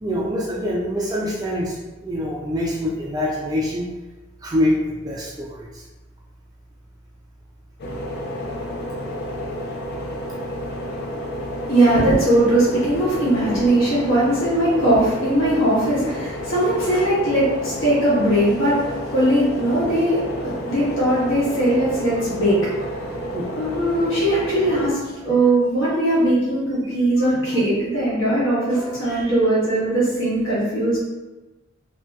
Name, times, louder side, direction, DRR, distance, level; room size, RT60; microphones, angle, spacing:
voice 1, 0.0-1.7 2.0-3.9 4.4-5.8 23.3-23.5 27.2-27.3, left 1 dB, 20° right, -5 dB, 0.3 m, -24 dB
sound 1, 7.8-24.9, equal, 55° left, 0.4 m, -30 dB
voice 2, 11.7-18.8 19.1-22.7 23.5-31.0, right 1 dB, 75° left, -8 dB, 1.1 m, -20 dB
2.9 x 2.6 x 2.3 m, 1.1 s
head